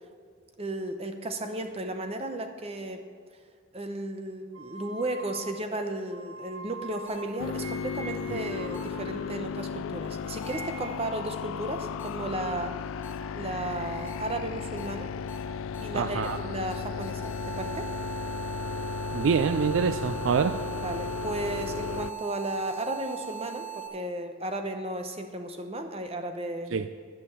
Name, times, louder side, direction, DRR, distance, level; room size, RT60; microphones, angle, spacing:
voice 1, 0.6-3.0 3.7-12.8 13.3-15.1 15.8-17.9 20.8-26.7, right 1 dB, 30° right, 6 dB, 0.8 m, -34 dB
sound 1, 4.5-9.8 10.1-11.2, right 3 dB, 85° right, 0.9 m, -44 dB
sound 2, 7.1-7.2 8.7-8.8 10.4-10.5 12.0-12.1 13.0-13.1 14.1-14.2 14.8-14.9 15.3-15.4 15.7-15.8 16.2-16.3 16.7-23.9, right 10 dB, 10° left, 1.5 m, -40 dB
sound 3, 7.4-22.1, left 6 dB, 75° left, 0.3 m, -35 dB
voice 2, 15.9-16.4 19.1-20.6 26.7-26.9, right 6 dB, 70° right, 11 dB, 0.4 m, -26 dB
11.5 x 7.0 x 6.9 m, 2.1 s
head